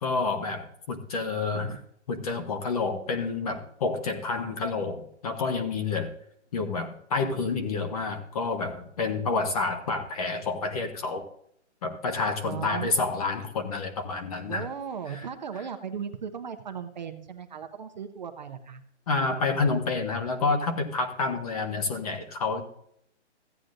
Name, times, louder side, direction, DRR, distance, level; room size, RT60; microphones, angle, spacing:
voice 1, 0.0-1.8 2.1-6.1 6.5-11.2 11.8-14.7 15.1-15.3 19.1-22.6, left 4 dB, 30° left, 7 dB, 1.0 m, -29 dB
voice 2, 12.4-12.9 14.5-18.8, right 7 dB, 40° right, 7 dB, 0.7 m, -37 dB
15.0 x 8.9 x 2.5 m, 0.71 s
hypercardioid pair, 165°, 36 cm